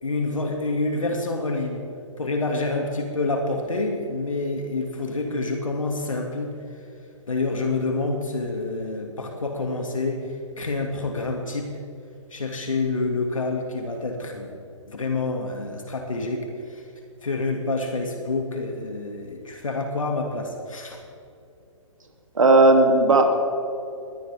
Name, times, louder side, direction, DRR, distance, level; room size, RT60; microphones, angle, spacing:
voice 1, 0.0-1.8 2.2-6.8 7.3-11.7 12.3-16.9 17.2-21.0, left 3 dB, 80° left, 2 dB, 2.4 m, -28 dB
voice 2, 22.3-23.3, right 2 dB, 75° right, 3 dB, 2.9 m, -15 dB
21.5 x 18.0 x 3.6 m, 2.7 s
figure-of-eight pair, 125°, 17 cm